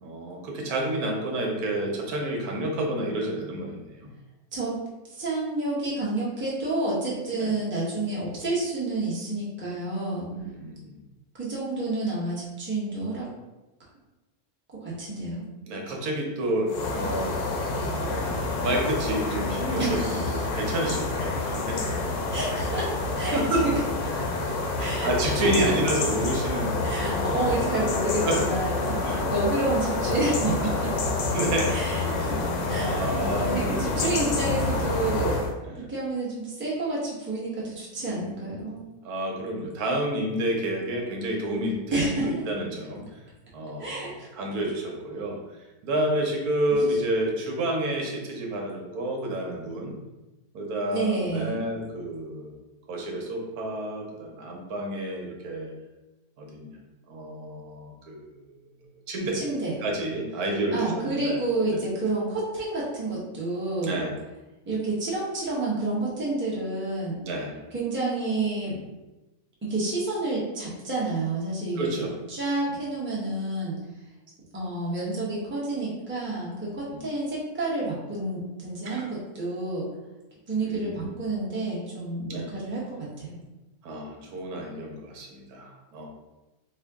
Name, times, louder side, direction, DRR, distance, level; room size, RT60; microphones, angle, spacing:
voice 1, 0.0-4.1 7.4-7.5 10.2-11.0 15.6-17.3 18.0-21.8 23.3-23.6 24.8-27.6 28.2-28.4 29.0-29.3 31.3-31.8 32.8-34.0 34.8-34.9 35.6-35.9 38.0-38.4 39.0-43.0 43.5-44.0 44.3-45.4 45.8-49.9 50.5-52.5 52.9-55.7 56.4-56.8 57.1-58.5 59.1-59.4 59.8-61.4 61.7-61.8 63.8-64.1 67.2-67.5 68.6-68.8 71.8-72.1 76.9-77.0 78.9-79.0 80.6-81.1 82.3-82.5 83.8-86.1, right 1 dB, 80° right, 0 dB, 1.2 m, -30 dB
voice 2, 5.1-10.3 11.4-13.3 14.8-15.4 19.8-20.5 22.3-23.8 24.8-25.7 26.8-30.9 31.7-33.2 33.4-35.4 35.8-38.8 41.9-42.3 43.8-44.3 46.8-47.0 50.9-51.6 59.3-59.7 60.7-64.0 64.7-67.2 67.7-68.7 69.7-71.9 72.3-73.8 74.5-79.8 80.5-83.3, right 2 dB, 10° right, -7 dB, 0.6 m, -29 dB
sound 1, 16.7-35.5, left 3 dB, 65° left, 0.8 m, -28 dB
3.6 x 2.1 x 3.4 m, 1.1 s
omnidirectional pair, 1.6 m